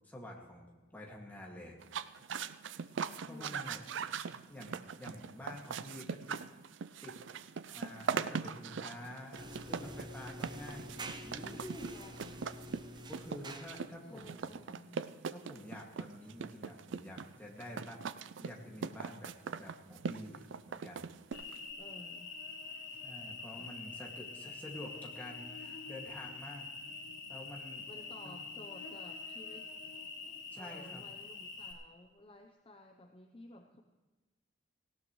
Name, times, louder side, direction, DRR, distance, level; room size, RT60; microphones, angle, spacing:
voice 1, 0.0-1.7 3.2-3.8 4.5-6.4 7.0-7.2 7.7-11.9 13.1-14.6 15.3-18.0 18.4-21.1 23.0-26.7 27.3-27.9 28.2-28.4 30.5-31.0, left 1 dB, 10° left, -2 dB, 2.1 m, -48 dB
sound 1, 1.8-21.7, right 6 dB, 70° right, 0.4 m, -41 dB
voice 2, 3.3-3.8 11.9-12.5 14.1-15.0 21.8-22.3 23.5-23.8 27.9-29.7 30.6-33.8, left 1 dB, 25° left, 3 dB, 0.7 m, -54 dB
sound 2, 9.4-14.0, right 1 dB, 20° right, 0.7 m, -47 dB
Cricket, 21.3-31.7, left 4 dB, 65° left, 3.2 m, -46 dB
18.0 x 17.0 x 3.2 m, 1.3 s
head